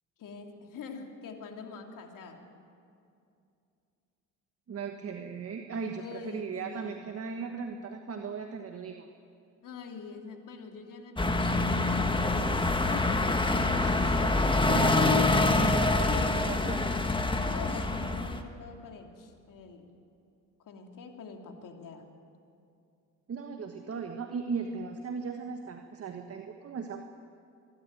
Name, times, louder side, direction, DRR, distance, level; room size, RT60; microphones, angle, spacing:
voice 1, 0.2-2.4 5.9-7.0 9.6-14.3 14.7-15.5 16.1-16.6 17.5-19.9 20.6-22.1, left 5 dB, 60° left, 3 dB, 3.0 m, -44 dB
voice 2, 4.7-9.1 13.8-14.0 14.3-17.0 23.3-27.0, right 5 dB, 40° right, 4 dB, 1.5 m, -37 dB
sound 1, 11.2-18.4, left 2 dB, 15° left, 1.6 m, -26 dB
25.0 x 12.5 x 9.2 m, 2.6 s
supercardioid pair, 85°, 36 cm